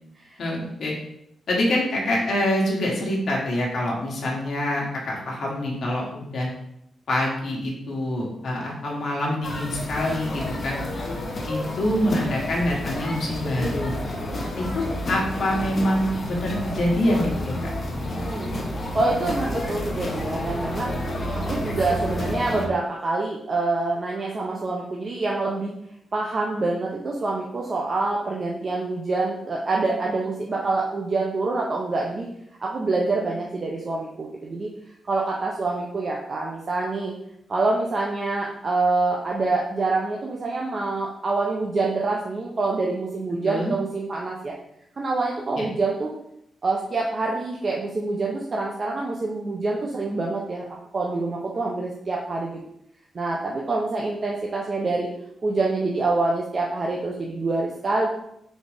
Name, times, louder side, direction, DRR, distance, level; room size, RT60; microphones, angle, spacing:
voice 1, 0.4-0.9 1.5-6.5 7.1-10.8 11.5-13.9 14.6-17.5 43.4-43.7 45.5-45.7, left 1 dB, 55° left, -3 dB, 1.3 m, -25 dB
sound 1, 9.4-22.7, left 1 dB, 35° left, 0.8 m, -30 dB
voice 2, 18.2-18.5 18.9-25.7 26.1-32.3 32.6-34.7 35.1-37.1 37.5-44.5 45.0-46.1 46.6-52.6 53.1-55.1 55.4-58.1, right 3 dB, 35° right, -2 dB, 0.6 m, -26 dB
4.1 x 3.7 x 3.4 m, 0.77 s
wide cardioid pair, 135°, 0 cm